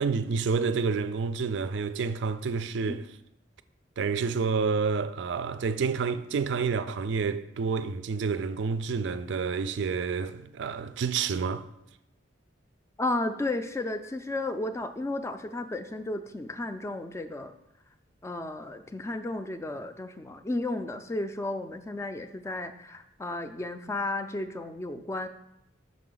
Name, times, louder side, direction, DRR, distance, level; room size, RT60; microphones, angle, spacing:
voice 1, 0.0-3.1 4.0-11.6, right 5 dB, 65° right, 0.4 m, -29 dB
voice 2, 13.0-17.5 18.2-25.3, left 2 dB, 15° left, 0.3 m, -33 dB
6.2 x 4.9 x 3.8 m
head